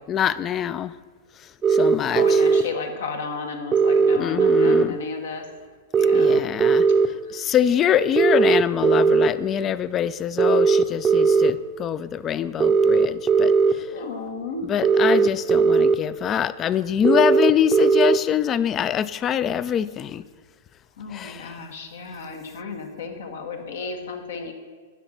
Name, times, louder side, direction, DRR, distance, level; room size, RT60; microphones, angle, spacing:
voice 1, 0.1-0.9 1.7-2.4 4.2-5.0 6.1-6.9 7.3-13.9 14.6-20.2 21.1-21.5, left 9 dB, 30° left, 17 dB, 0.3 m, -24 dB
sound 1, 1.6-2.6 3.7-4.8 5.9-7.1 8.2-9.3 10.4-11.5 12.6-13.7 14.8-16.0 17.0-18.2, right 5 dB, 20° right, 0.6 m, -17 dB
voice 2, 2.1-5.4 5.9-6.4 7.3-7.4 13.9-14.7 21.0-24.5, left 4 dB, 75° left, 4 dB, 1.4 m, -33 dB
10.0 x 3.9 x 7.4 m, 1.5 s
hypercardioid pair, 120°, 0 cm